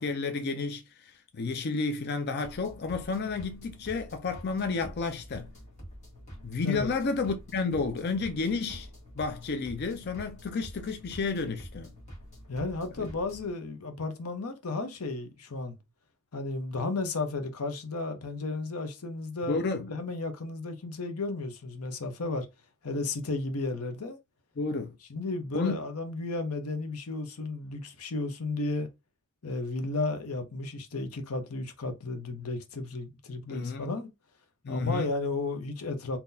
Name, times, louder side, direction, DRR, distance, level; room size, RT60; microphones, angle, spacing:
voice 1, 0.0-5.5 6.4-8.9 9.2-11.9 13.0-13.1 19.5-19.9 24.6-25.0 25.5-25.8 33.5-33.9 34.6-35.1, left 4 dB, 50° left, 0.4 m, -31 dB
sound 1, 2.4-13.5, equal, 35° left, 1.6 m, -47 dB
voice 2, 12.5-15.8 16.3-19.6 19.9-22.5 22.8-24.2 25.1-28.9 29.4-34.1 34.7-36.2, left 3 dB, 85° left, 0.8 m, -33 dB
3.8 x 2.8 x 2.7 m
head